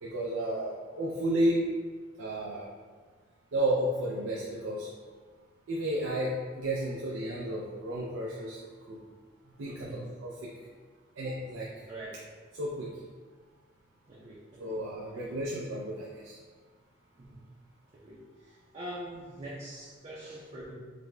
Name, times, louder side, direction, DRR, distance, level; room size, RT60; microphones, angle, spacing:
voice 1, 0.0-1.6 2.2-2.7 3.5-4.9 5.7-9.0 9.6-10.5 11.2-11.7 12.5-12.9 14.6-16.4, right 1 dB, 85° right, -3 dB, 0.5 m, -32 dB
voice 2, 9.7-10.0 11.9-12.1 14.1-14.8 17.2-17.4 17.9-20.7, right 1 dB, 30° right, -7 dB, 0.5 m, -44 dB
5.0 x 2.2 x 3.7 m, 1.5 s
head